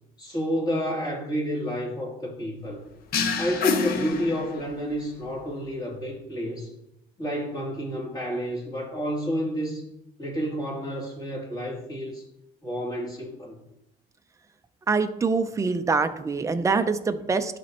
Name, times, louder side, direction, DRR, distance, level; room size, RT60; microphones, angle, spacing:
voice 1, 0.2-2.8 3.4-6.7 7.2-9.8 10.2-12.2 12.6-13.6, equal, 25° left, -3 dB, 2.8 m, -30 dB
sound 1, 3.1-4.9, left 5 dB, 60° left, 0.9 m, -27 dB
voice 2, 14.9-17.6, right 4 dB, 20° right, 9 dB, 0.5 m, -24 dB
11.5 x 4.2 x 2.9 m, 0.84 s
cardioid pair, 110°, 17 cm